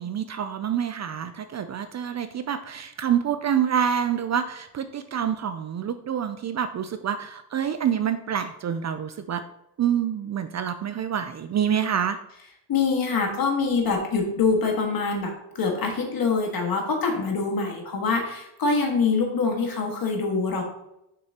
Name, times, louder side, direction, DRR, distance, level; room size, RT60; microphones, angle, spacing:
voice 1, 0.0-9.4 9.8-12.2, right 8 dB, 40° right, 10 dB, 0.4 m, -27 dB
voice 2, 12.7-20.6, left 4 dB, 50° left, 2 dB, 1.7 m, -24 dB
6.1 x 5.9 x 2.9 m, 0.84 s
cardioid pair, 90°, 44 cm